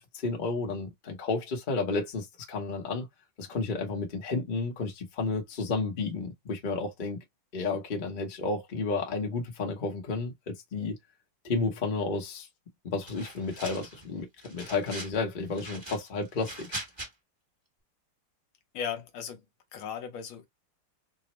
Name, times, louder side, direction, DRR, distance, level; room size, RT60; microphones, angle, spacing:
voice 1, 0.0-3.1 3.4-7.2 7.5-11.0 11.4-12.5 12.8-16.7, left 3 dB, 45° left, 0.6 m, -32 dB
sound 1, 13.0-14.0 14.4-15.2 15.5-17.1, right 1 dB, 20° right, 0.8 m, -41 dB
voice 2, 18.7-19.4 19.7-20.5, left 7 dB, 75° left, 1.6 m, -36 dB
3.8 x 2.1 x 3.0 m
omnidirectional pair, 2.4 m